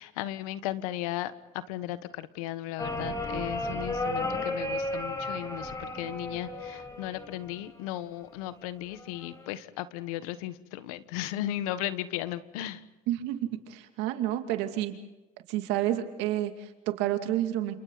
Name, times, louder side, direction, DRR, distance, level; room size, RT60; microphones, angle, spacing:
voice 1, 0.0-12.8, left 14 dB, 85° left, 13 dB, 1.3 m, -36 dB
sound 1, 2.8-7.8 9.0-9.5, left 1 dB, 20° left, 5.6 m, -34 dB
voice 2, 13.1-15.0 15.5-17.7, right 13 dB, 75° right, 6 dB, 2.6 m, -30 dB
29.5 x 27.5 x 4.1 m, 1.0 s
supercardioid pair, 90°, 18 cm